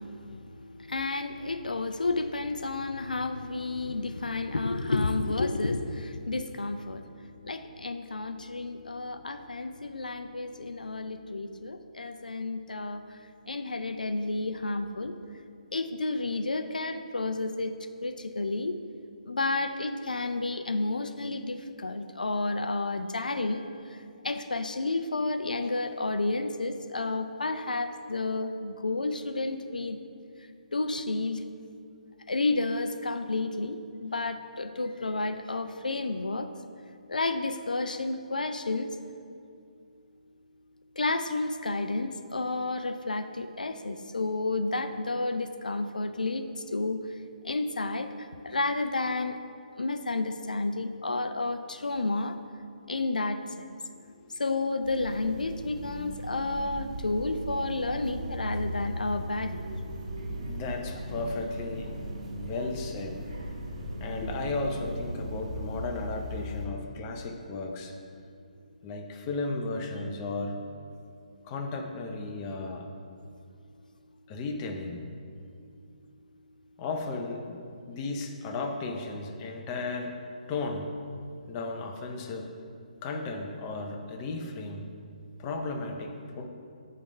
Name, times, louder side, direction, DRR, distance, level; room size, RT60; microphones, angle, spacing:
voice 1, 0.0-13.2 13.5-15.2 15.7-17.8 18.0-18.8 19.3-30.0 30.4-31.5 32.3-36.5 37.1-38.9 41.0-49.4 49.8-52.4 52.9-53.8 54.3-59.7, left 3 dB, 90° left, 9 dB, 0.4 m, -31 dB
sound 1, 54.8-66.7, equal, 55° right, 1.5 m, -37 dB
voice 2, 60.1-63.7 64.0-68.0 68.8-70.6 71.4-72.9 74.3-75.1 76.8-80.2 80.5-80.9 81.5-82.5 83.0-84.9 85.4-86.5, left 3 dB, 25° left, 3 dB, 0.7 m, -35 dB
8.7 x 3.3 x 6.5 m, 2.4 s
figure-of-eight pair, 145°, 4 cm